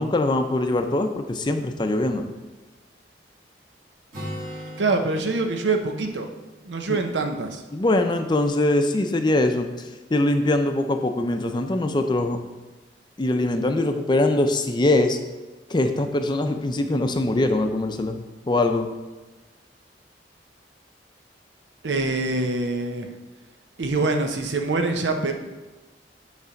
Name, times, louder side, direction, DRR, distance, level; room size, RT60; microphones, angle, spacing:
voice 1, 0.0-2.3 6.9-7.0 7.7-9.7 10.1-12.4 13.2-15.2 15.7-18.2 18.5-18.9, left 2 dB, 25° left, 6 dB, 0.5 m, -22 dB
Acoustic guitar, 4.1-7.8, equal, 50° right, 2.2 m, -40 dB
voice 2, 4.8-6.3 6.7-7.6 21.8-23.1 23.8-25.3, right 3 dB, 85° right, 5 dB, 0.8 m, -24 dB
8.2 x 3.4 x 5.1 m, 1.2 s
head